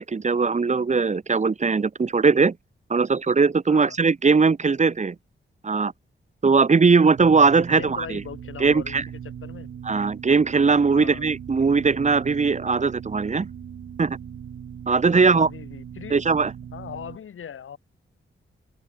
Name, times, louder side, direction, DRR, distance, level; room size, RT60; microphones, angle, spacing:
voice 1, 0.0-2.6 2.9-5.2 5.6-5.9 6.4-8.2 8.6-9.0 9.8-13.5 14.0-14.2 14.9-15.5 16.1-16.5, right 4 dB, 35° right, 2.2 m, -20 dB
sound 1, 7.1-17.2, right 8 dB, 70° right, 2.2 m, -39 dB
voice 2, 7.7-9.0 9.4-9.7 10.9-11.2 15.1-16.2 16.7-17.8, left 8 dB, 80° left, 5.2 m, -39 dB
wide cardioid pair, 150°, 21 cm